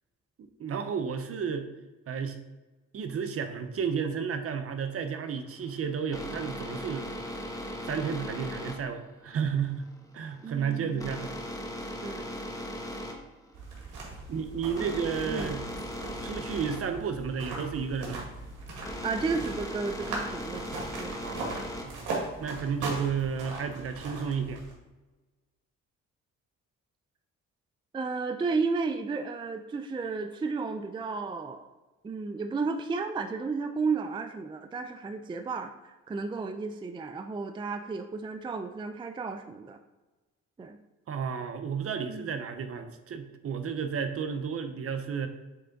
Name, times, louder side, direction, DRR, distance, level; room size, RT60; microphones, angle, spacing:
voice 1, 0.6-1.7 2.1-2.4 2.9-7.0 7.9-9.9 10.1-11.3 14.3-15.7 16.2-18.3 21.2-21.6 21.8-22.0 22.4-24.6 41.1-45.3, right 6 dB, 50° right, 8 dB, 0.7 m, -32 dB
sound 1, 5.5-22.1, equal, 10° left, 1.0 m, -39 dB
voice 2, 10.4-11.1 12.0-12.4 14.8-14.9 15.3-15.6 19.0-21.2 27.9-31.7 32.0-39.8 40.6-40.8 42.1-42.3, right 4 dB, 15° right, 7 dB, 0.4 m, -33 dB
sound 2, 13.5-24.7, right 2 dB, 80° right, 1.9 m, -39 dB
7.4 x 3.3 x 4.0 m, 1.2 s
cardioid pair, 90°, 30 cm